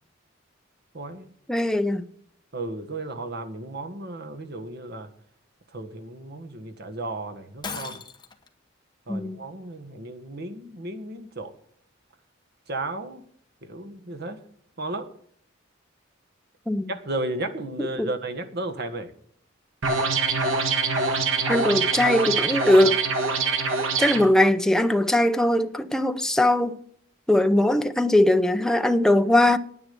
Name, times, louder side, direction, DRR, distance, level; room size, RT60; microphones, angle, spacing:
voice 1, 0.9-1.3 2.5-5.1 5.7-8.0 9.1-11.5 12.7-13.2 13.6-14.4 14.8-15.1 16.9-19.1, right 2 dB, 55° right, 1.6 m, -34 dB
voice 2, 1.5-2.0 9.1-9.4 16.7-16.9 18.0-18.1 21.5-23.0 24.0-26.8 27.3-29.6, left 1 dB, 5° left, 0.6 m, -20 dB
Shatter, 7.6-8.5, left 5 dB, 20° left, 1.1 m, -36 dB
sound 1, 19.8-24.2, right 4 dB, 85° right, 1.7 m, -24 dB
10.0 x 9.4 x 7.0 m
head